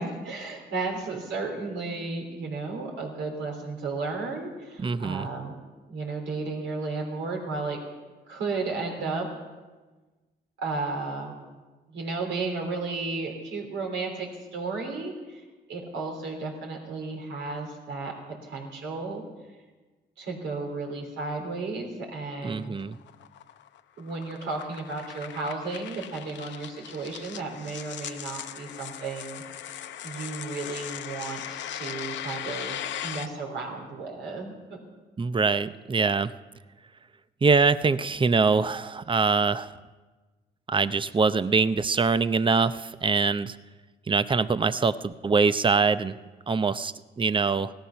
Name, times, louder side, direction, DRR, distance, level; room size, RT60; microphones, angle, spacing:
voice 1, 0.0-5.5 5.9-7.8 8.3-9.3 10.6-11.3 11.9-15.4 15.7-18.1 18.4-19.2 20.2-22.8 24.0-34.9, right 3 dB, 80° right, 1 dB, 3.4 m, -33 dB
voice 2, 4.8-5.3 22.4-23.0 35.2-36.3 37.4-39.8 40.7-43.6 44.1-46.2 46.5-47.7, right 4 dB, 25° right, 14 dB, 0.6 m, -24 dB
sound 1, 22.5-33.3, left 10 dB, 80° left, 0.7 m, -39 dB
17.0 x 13.0 x 5.8 m, 1.3 s
cardioid pair, 65°, 18 cm